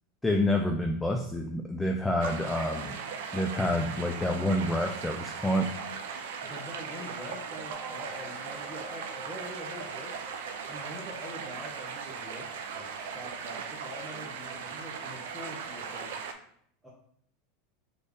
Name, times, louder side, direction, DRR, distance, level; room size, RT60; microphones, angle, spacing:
voice 1, 0.2-3.0 3.3-5.7, left 1 dB, 5° left, 3 dB, 0.4 m, -28 dB
sound 1, 2.2-16.3, right 6 dB, 80° right, 0.5 m, -38 dB
voice 2, 6.4-10.2 10.7-16.1 16.8-16.9, left 1 dB, 10° right, -6 dB, 1.0 m, -44 dB
sound 2, 7.7-12.6, right 2 dB, 30° right, 0.7 m, -50 dB
4.2 x 3.2 x 3.4 m, 0.65 s
supercardioid pair, 130°, 0 cm